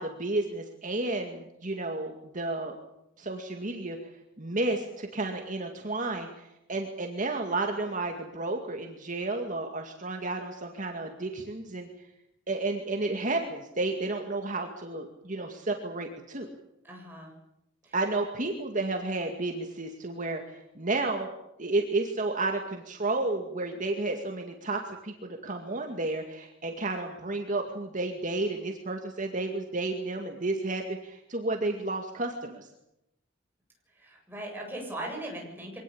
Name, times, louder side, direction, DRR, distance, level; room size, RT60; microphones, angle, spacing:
voice 1, 0.0-2.7 3.2-4.1 4.4-11.9 12.5-16.5 17.9-21.3 21.6-32.7, right 2 dB, 40° right, 3 dB, 2.2 m, -32 dB
voice 2, 16.8-17.3 17.8-18.0 33.9-35.8, right 1 dB, 10° right, -1 dB, 7.9 m, -39 dB
24.0 x 18.5 x 8.7 m, 0.88 s
head